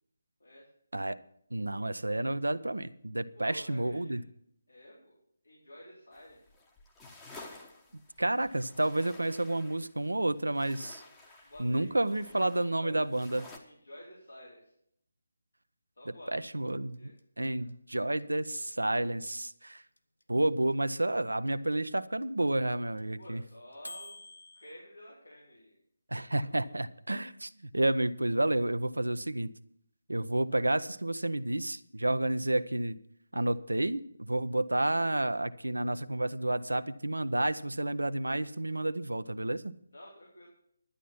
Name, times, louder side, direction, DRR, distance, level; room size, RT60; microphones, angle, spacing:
voice 1, 1.5-4.2 8.2-11.0 11.6-13.4 16.3-17.1 17.4-19.8 20.3-23.4 26.1-29.5 30.1-33.0 33.3-39.7, right 1 dB, 75° right, 13 dB, 0.6 m, -30 dB
voice 2, 3.4-4.2 4.7-5.2 5.4-6.4 11.4-13.1 13.6-14.7 16.0-16.3 17.0-17.1 17.5-17.7 23.2-24.2 24.5-25.8 26.1-26.7 39.9-40.5, equal, 70° left, -5 dB, 3.7 m, -51 dB
sound 1, 6.1-13.6, left 2 dB, 10° left, 1.1 m, -53 dB
sound 2, 16.4-24.7, left 1 dB, 85° left, 1.0 m, -48 dB
11.5 x 9.3 x 5.8 m, 0.69 s
figure-of-eight pair, 150°, 0 cm